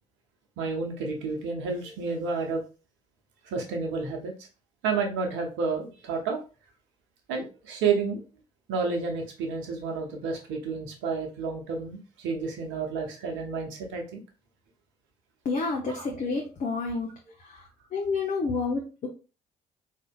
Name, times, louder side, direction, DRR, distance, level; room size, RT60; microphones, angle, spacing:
voice 1, 0.6-2.6 3.5-4.3 4.8-6.4 7.3-8.2 8.7-14.2 15.9-16.1 16.9-17.0, right 4 dB, 65° right, 2 dB, 1.0 m, -30 dB
voice 2, 15.4-17.1 17.4-17.6 17.9-19.1, left 4 dB, 40° left, 0 dB, 0.8 m, -29 dB
4.1 x 2.7 x 2.3 m, 0.33 s
figure-of-eight pair, 45°, 21 cm